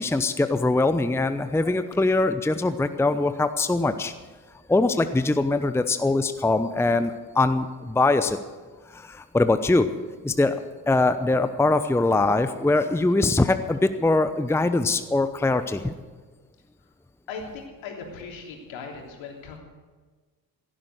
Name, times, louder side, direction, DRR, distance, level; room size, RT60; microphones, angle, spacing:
voice 1, 0.0-4.1 4.7-8.4 8.9-9.9 10.2-10.6 10.9-15.9, left 2 dB, 5° left, 10 dB, 0.8 m, -22 dB
voice 2, 17.3-19.6, left 5 dB, 65° left, 1 dB, 3.4 m, -38 dB
16.5 x 11.5 x 6.6 m, 1.4 s
hypercardioid pair, 50°, 49 cm